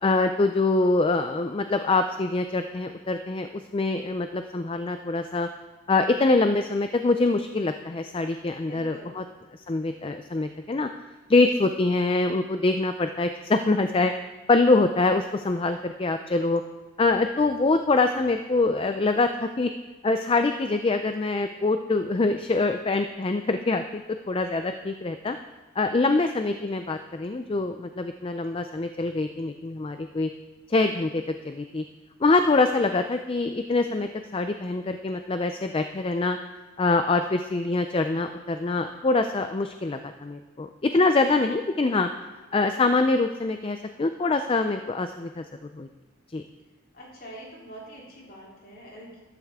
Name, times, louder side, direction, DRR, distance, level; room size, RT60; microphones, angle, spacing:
voice 1, 0.0-5.5 5.9-9.2 9.7-10.9 11.3-14.1 14.5-16.6 17.0-19.7 20.0-24.0 24.3-25.4 25.8-30.3 30.7-31.8 32.2-36.4 36.8-42.1 42.5-45.4 45.7-45.9 46.3-46.4, left 3 dB, 25° left, 8 dB, 0.4 m, -24 dB
voice 2, 8.7-9.4 46.9-49.2, right 1 dB, 45° left, -4 dB, 3.3 m, -46 dB
14.0 x 11.5 x 3.6 m, 1.2 s
head